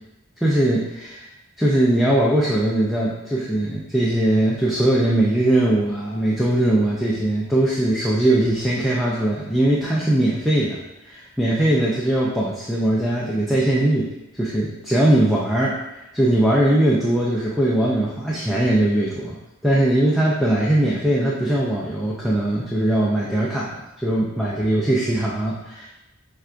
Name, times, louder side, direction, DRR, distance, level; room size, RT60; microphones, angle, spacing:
voice 1, 0.4-1.2 1.6-14.1 14.4-19.4 19.6-25.9, right 1 dB, ahead, -6 dB, 0.3 m, -20 dB
7.0 x 2.3 x 2.5 m, 0.95 s
head